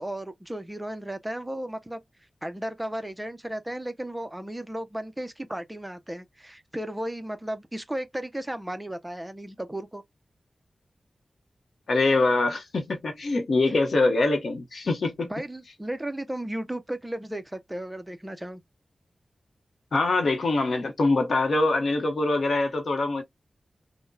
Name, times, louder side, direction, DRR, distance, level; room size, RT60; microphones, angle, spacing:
voice 1, 0.0-2.0 2.4-10.0 15.3-18.6, right 1 dB, 10° right, 0.5 m, -34 dB
voice 2, 11.9-15.3 19.9-23.2, left 2 dB, 75° left, 0.8 m, -24 dB
3.7 x 2.1 x 2.6 m
wide cardioid pair, 85°, 0 cm